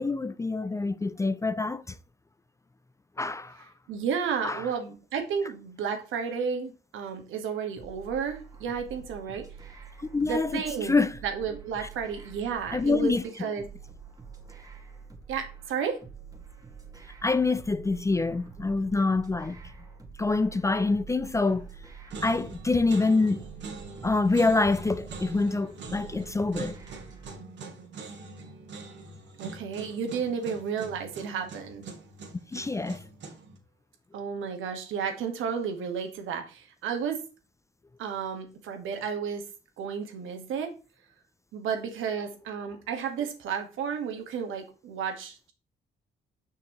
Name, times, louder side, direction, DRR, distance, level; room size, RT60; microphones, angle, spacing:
voice 1, 0.0-2.0 3.2-3.6 4.4-4.6 10.0-11.2 11.8-11.9 12.7-13.2 17.2-19.6 20.2-21.7 22.2-23.4 24.0-26.8 32.5-33.0, left 3 dB, 15° left, 0.4 m, -26 dB
voice 2, 3.9-9.4 10.2-10.9 11.2-13.6 15.3-16.0 29.4-31.8 34.1-37.2 38.0-39.4 39.8-40.7 41.5-45.5, right 6 dB, 85° right, 1.6 m, -32 dB
sound 1, 7.8-27.4, right 6 dB, 15° right, 1.9 m, -47 dB
sound 2, 21.4-21.8 22.1-33.6, right 3 dB, 65° right, 1.8 m, -43 dB
6.6 x 5.9 x 3.0 m
cardioid pair, 90°, 20 cm